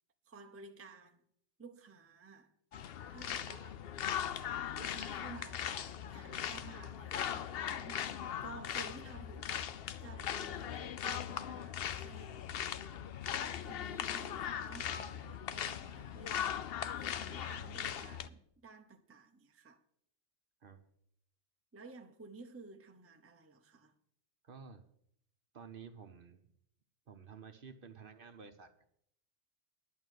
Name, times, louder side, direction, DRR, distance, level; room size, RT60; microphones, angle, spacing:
voice 1, 0.3-1.2 1.6-2.5 3.1-4.1 4.4-12.5 13.2-19.8 21.7-23.9, right 4 dB, 15° right, 0.7 m, -54 dB
sound 1, 2.7-18.3, left 9 dB, 60° left, 0.8 m, -39 dB
voice 2, 24.4-24.8 25.5-26.4 27.1-28.8, right 6 dB, 55° right, 1.0 m, -52 dB
11.0 x 6.1 x 8.0 m
omnidirectional pair, 1.2 m